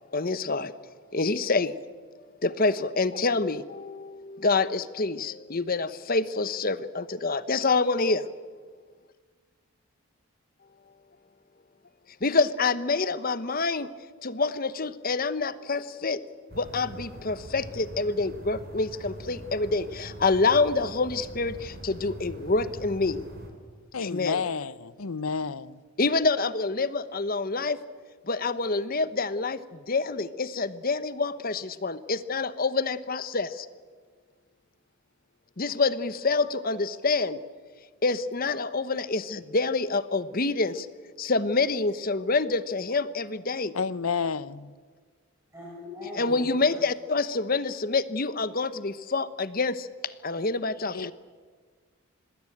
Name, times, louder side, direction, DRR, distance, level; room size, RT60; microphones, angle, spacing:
voice 1, 0.1-0.7 1.1-1.7 2.4-8.2 12.2-13.9 14.2-16.2 16.5-23.2 24.0-24.4 26.0-27.8 28.3-29.6 29.9-33.7 35.6-37.4 38.0-40.9 41.2-43.7 46.1-49.9 50.2-51.1, left 3 dB, 40° left, 1.0 m, -27 dB
sound 1, 16.5-23.5, equal, 45° right, 4.3 m, -43 dB
voice 2, 23.9-25.8 43.7-44.7 50.9-51.1, left 5 dB, 85° left, 0.8 m, -30 dB
voice 3, 45.5-46.8, left 2 dB, 15° right, 6.4 m, -41 dB
26.5 x 20.0 x 8.7 m
head